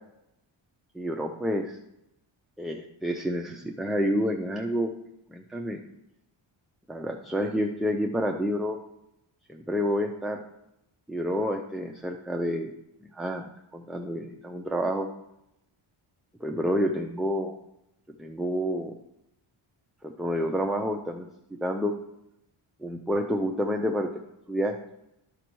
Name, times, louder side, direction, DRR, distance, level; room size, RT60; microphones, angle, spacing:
voice 1, 0.9-1.8 2.6-4.9 5.3-5.8 6.9-8.8 9.5-10.4 11.1-12.7 13.0-13.5 13.7-15.1 16.4-17.6 18.2-19.0 20.0-21.3 21.5-21.9 22.8-24.1 24.5-24.7, equal, ahead, 1 dB, 0.5 m, -29 dB
11.0 x 5.1 x 4.6 m, 0.84 s
wide cardioid pair, 105°, 48 cm